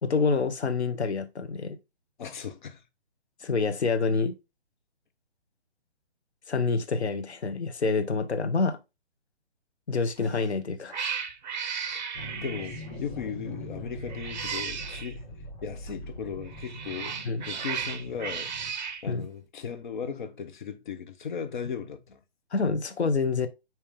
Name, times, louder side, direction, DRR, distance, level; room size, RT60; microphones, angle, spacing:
voice 1, 0.0-1.8 3.4-4.3 6.5-8.8 9.9-11.0 17.2-17.4 19.1-19.2 22.5-23.5, left 4 dB, 80° left, 1.3 m, -27 dB
voice 2, 2.2-2.8 11.9-12.0 12.4-17.2 17.4-18.5 19.0-22.2, left 7 dB, 45° left, 1.2 m, -37 dB
Cat, 10.2-10.5 10.9-12.9 14.0-15.1 16.5-19.0, right 6 dB, 45° right, 0.9 m, -35 dB
sound 1, 12.1-18.7, equal, 20° left, 1.7 m, -42 dB
9.1 x 3.2 x 3.6 m
hypercardioid pair, 150°, 33 cm